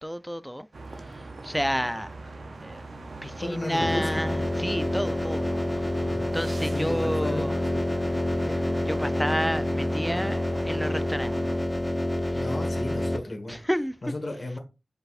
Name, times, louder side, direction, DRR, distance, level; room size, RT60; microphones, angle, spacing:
voice 1, 0.0-0.7 0.9-2.1 2.6-2.9 3.2-6.0 6.3-7.6 8.3-11.3 12.3-12.5 13.5-13.9, equal, ahead, 0.3 m, -31 dB
sound 1, 0.7-11.6, right 2 dB, 80° right, 0.6 m, -42 dB
voice 2, 3.4-4.2 6.0-6.4 6.6-7.8 10.1-10.2 12.3-13.6 14.0-14.6, left 2 dB, 55° left, 1.4 m, -34 dB
sound 2, 3.8-13.2, left 1 dB, 25° left, 0.7 m, -28 dB
5.3 x 4.0 x 2.4 m
wide cardioid pair, 70°, 0 cm